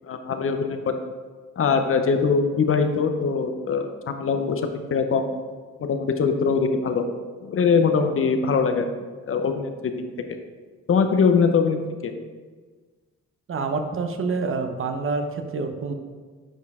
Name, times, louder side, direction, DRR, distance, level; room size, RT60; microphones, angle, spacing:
voice 1, 0.1-0.9 1.6-4.6 4.9-5.3 5.8-7.0 7.4-8.9 9.3-9.9 10.9-12.1, left 5 dB, 45° left, 7 dB, 0.7 m, -22 dB
voice 2, 13.5-15.9, right 4 dB, 45° right, 6 dB, 0.8 m, -27 dB
10.0 x 4.4 x 3.6 m, 1.4 s
cardioid pair, 90°, 30 cm